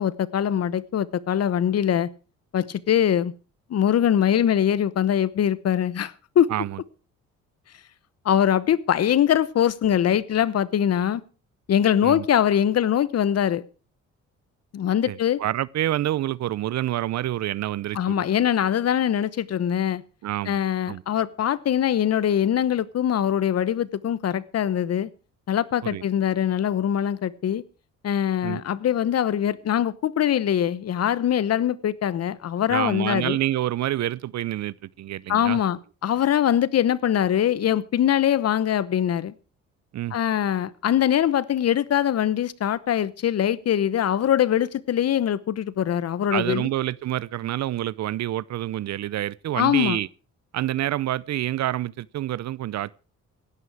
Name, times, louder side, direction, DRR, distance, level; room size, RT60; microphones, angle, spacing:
voice 1, 0.0-2.1 2.5-3.3 3.7-6.5 8.2-11.2 11.7-13.6 14.7-15.4 17.9-20.0 20.5-25.1 25.5-27.6 28.0-33.4 35.3-39.3 40.1-46.7 49.5-50.0, left 10 dB, 55° left, 1.0 m, -22 dB
voice 2, 6.5-6.8 12.0-12.2 15.1-18.2 20.2-20.6 20.9-21.0 25.8-26.0 28.4-28.6 32.7-35.6 39.9-40.2 46.3-50.1 50.5-52.9, right 13 dB, 65° right, 0.6 m, -27 dB
16.5 x 12.5 x 4.8 m
cardioid pair, 90°, 30 cm